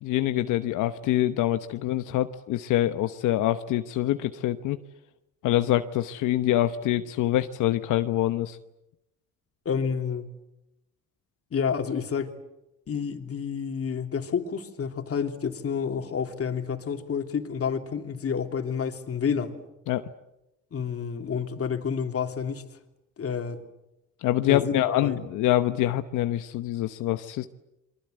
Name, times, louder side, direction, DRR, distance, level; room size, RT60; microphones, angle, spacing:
voice 1, 0.0-4.8 5.4-8.6 19.9-20.1 24.2-27.5, left 13 dB, 90° left, 1.0 m, -25 dB
voice 2, 9.6-10.3 11.5-12.3 12.9-19.5 20.7-22.6 23.2-23.6 24.5-25.2, left 6 dB, 50° left, 3.1 m, -29 dB
28.5 x 23.5 x 7.9 m
cardioid pair, 90°, 30 cm